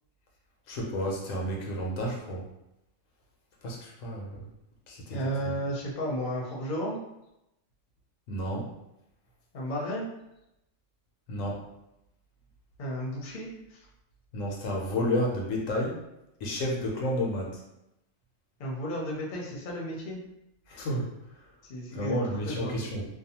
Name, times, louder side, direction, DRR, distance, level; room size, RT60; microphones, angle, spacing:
voice 1, 0.7-2.4 3.6-4.5 4.9-5.6 8.3-8.7 11.3-11.6 14.3-15.9 16.4-17.6 20.7-21.1 21.9-23.0, equal, 90° left, -1 dB, 1.1 m, -31 dB
voice 2, 5.1-7.0 9.5-10.1 12.8-13.8 18.6-20.2 21.7-22.2 22.4-22.8, equal, 50° left, -2 dB, 0.7 m, -33 dB
2.6 x 2.2 x 2.7 m, 0.87 s
omnidirectional pair, 1.3 m